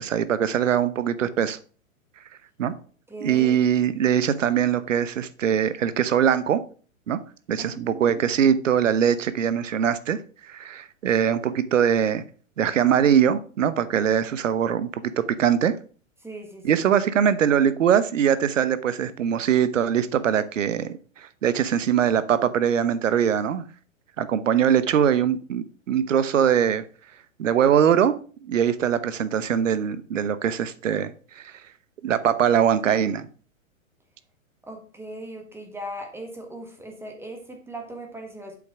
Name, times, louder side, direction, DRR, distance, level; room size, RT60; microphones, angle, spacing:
voice 1, 0.0-1.6 2.6-2.7 3.2-6.6 7.1-7.2 7.5-10.2 10.4-12.2 12.6-15.7 16.6-23.6 24.2-26.8 27.4-28.1 28.5-31.5 32.0-33.3, right 8 dB, 65° right, 14 dB, 1.0 m, -22 dB
voice 2, 3.1-3.6 7.6-8.2 16.2-16.8 34.6-38.6, right 1 dB, 5° right, 3 dB, 1.6 m, -39 dB
7.7 x 6.1 x 4.8 m, 0.39 s
figure-of-eight pair, 115°, 40 cm